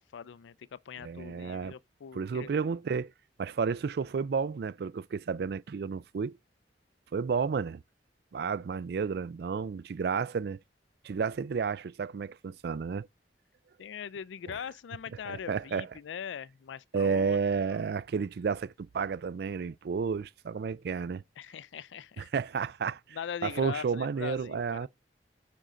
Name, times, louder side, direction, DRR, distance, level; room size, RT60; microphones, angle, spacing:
voice 1, 0.0-2.5 13.8-17.8 21.4-22.3 23.1-24.9, left 7 dB, 85° left, 0.4 m, -41 dB
voice 2, 1.0-1.7 2.1-3.1 3.4-6.4 7.1-7.8 8.3-10.6 11.0-13.1 15.3-15.9 16.9-21.2 22.2-23.2 23.4-24.9, right 5 dB, 60° right, 0.3 m, -31 dB
9.2 x 5.1 x 3.7 m
head